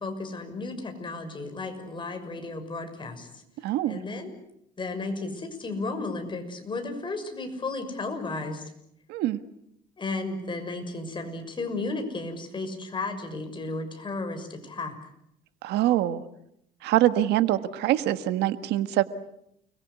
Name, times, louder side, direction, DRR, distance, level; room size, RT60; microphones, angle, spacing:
voice 1, 0.0-3.4 3.8-4.3 4.8-8.6 10.0-15.0, left 3 dB, 30° left, 6 dB, 6.5 m, -34 dB
voice 2, 3.6-4.0 9.1-9.4 15.6-16.2 16.8-19.0, right 13 dB, 85° right, 11 dB, 1.6 m, -24 dB
29.5 x 22.0 x 8.3 m, 0.77 s
cardioid pair, 110°, 17 cm